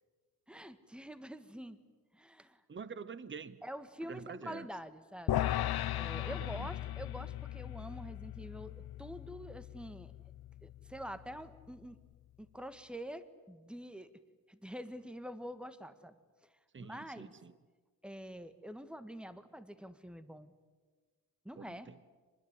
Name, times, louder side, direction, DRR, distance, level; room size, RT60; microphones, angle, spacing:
voice 1, 0.5-1.8 2.1-2.6 3.6-5.5 5.9-10.1 10.6-12.0 12.4-14.1 14.5-16.2 16.8-17.3 18.0-20.5 21.5-21.9, equal, 5° right, 11 dB, 1.7 m, -46 dB
voice 2, 2.7-3.6 4.0-4.7 6.2-6.7 16.7-17.5 21.6-22.0, right 5 dB, 30° right, 16 dB, 1.0 m, -47 dB
sound 1, 5.3-11.7, left 13 dB, 90° left, 0.7 m, -38 dB
25.0 x 21.0 x 9.7 m, 1.4 s
cardioid pair, 95°, 36 cm